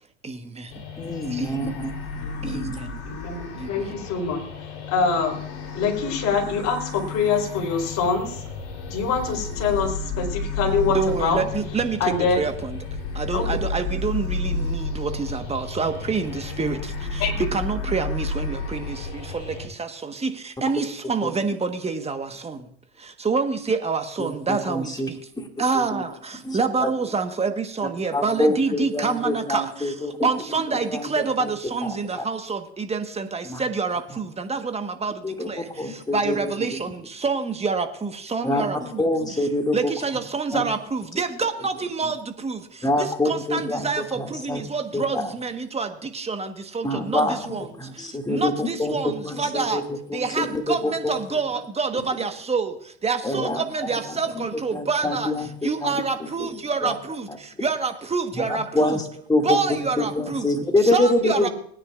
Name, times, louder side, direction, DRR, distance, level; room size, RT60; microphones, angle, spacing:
voice 1, 0.2-0.8 1.3-1.8 2.4-3.0 3.5-4.0 10.9-12.9 13.1-22.7 23.0-25.2 25.6-39.5 39.7-49.8 50.1-59.0 59.4-60.5 60.9-61.5, right 4 dB, 20° right, 8 dB, 1.3 m, -27 dB
sound 1, 0.7-19.7, left 3 dB, 70° left, 3.2 m, -32 dB
voice 2, 1.0-2.8 21.2-21.3 24.2-25.1 25.3-25.5 25.7-26.0 26.4-26.9 28.1-31.5 31.9-32.2 33.4-33.6 35.2-36.8 38.4-39.9 40.5-40.6 42.8-44.6 44.9-45.2 46.8-47.4 47.8-51.2 53.2-53.6 54.3-54.4 54.7-56.0 56.4-56.5 56.8-57.0 58.3-59.0 59.3-59.6 60.0-61.5, left 2 dB, 10° left, 3 dB, 2.2 m, -26 dB
voice 3, 3.1-5.4 5.7-8.4 8.9-11.4 12.0-12.4 13.3-13.4 17.2-17.3, left 5 dB, 50° left, 0 dB, 3.9 m, -25 dB
20.0 x 9.7 x 2.5 m, 0.64 s
hypercardioid pair, 85°, 34 cm